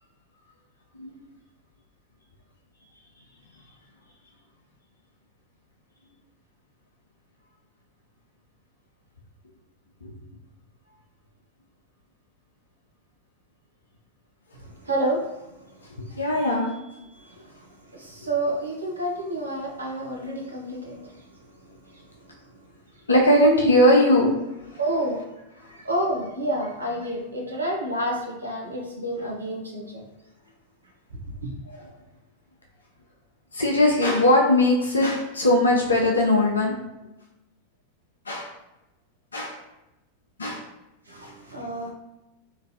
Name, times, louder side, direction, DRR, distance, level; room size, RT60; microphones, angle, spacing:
voice 1, 14.6-15.4 17.4-17.5 17.9-21.2 21.9-22.0 24.8-25.2 25.7-30.0 31.4-31.5 41.1-41.9, right 1 dB, 80° right, -2 dB, 0.6 m, -29 dB
voice 2, 16.1-16.9 23.1-24.3 24.7-24.8 31.7-31.9 33.5-36.7 38.3-38.5 39.3-39.6 40.4-40.7, left 1 dB, 75° left, -1 dB, 0.4 m, -20 dB
3.0 x 2.5 x 2.6 m, 0.98 s
figure-of-eight pair, 90°, 0 cm